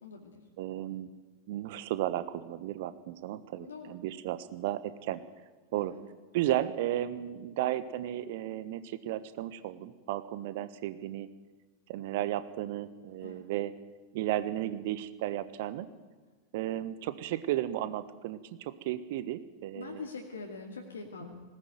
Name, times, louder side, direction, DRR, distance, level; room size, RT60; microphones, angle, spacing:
voice 1, 0.0-0.5 3.6-4.0 5.7-6.0 13.2-13.4 19.7-21.4, left 4 dB, 70° left, 1 dB, 2.4 m, -44 dB
voice 2, 0.6-1.1 1.5-5.2 5.7-5.9 6.3-11.3 11.9-13.7 14.1-15.9 16.5-20.0, right 13 dB, 50° right, 13 dB, 1.3 m, -34 dB
20.0 x 18.5 x 9.2 m, 1.3 s
figure-of-eight pair, 90°, 0 cm